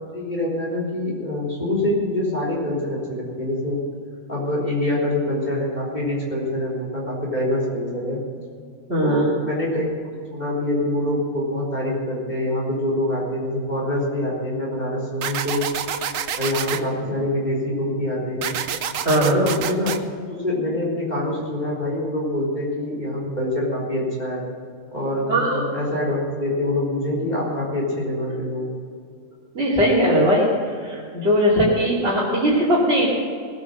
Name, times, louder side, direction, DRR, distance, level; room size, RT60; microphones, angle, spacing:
voice 1, 0.1-3.8 4.3-8.2 9.0-9.9 10.3-15.7 16.3-18.6 19.1-19.9 20.3-24.4 24.9-28.7, left 1 dB, 35° left, -4 dB, 4.0 m, -25 dB
voice 2, 8.9-9.3 19.0-19.5 25.3-25.6 29.5-33.1, equal, 50° right, -7 dB, 3.2 m, -19 dB
sound 1, 15.2-16.8 18.4-20.0, right 8 dB, 80° right, 1.2 m, -27 dB
18.5 x 9.3 x 6.5 m, 2.2 s
omnidirectional pair, 1.3 m